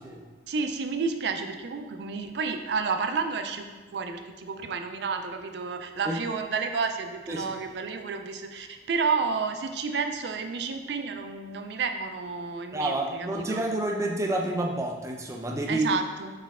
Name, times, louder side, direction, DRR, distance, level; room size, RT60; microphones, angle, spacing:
voice 1, 0.5-13.6 15.7-16.3, right 5 dB, 70° right, 6 dB, 0.4 m, -31 dB
voice 2, 12.7-15.9, right 1 dB, 15° right, 0 dB, 0.5 m, -29 dB
4.3 x 3.2 x 3.5 m, 1.4 s
head